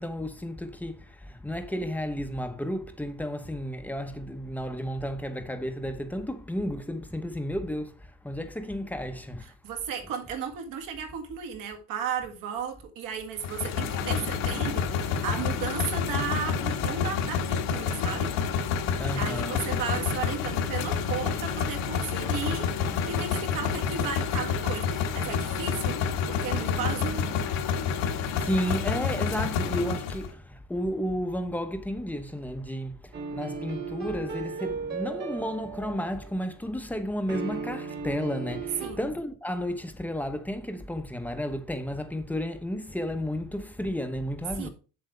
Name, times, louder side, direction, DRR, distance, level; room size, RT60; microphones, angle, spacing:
voice 1, 0.0-9.5 19.0-19.7 28.4-44.7, equal, 5° left, 0.9 m, -32 dB
voice 2, 9.4-18.4 19.1-22.7 23.1-26.0 26.3-27.3 38.8-39.1 44.6-44.7, right 7 dB, 65° right, 1.9 m, -34 dB
sound 1, 13.4-30.3, left 7 dB, 75° left, 1.7 m, -28 dB
sound 2, 33.1-36.4 37.3-38.9, right 5 dB, 30° right, 1.5 m, -36 dB
7.9 x 7.6 x 3.3 m
cardioid pair, 145°, 36 cm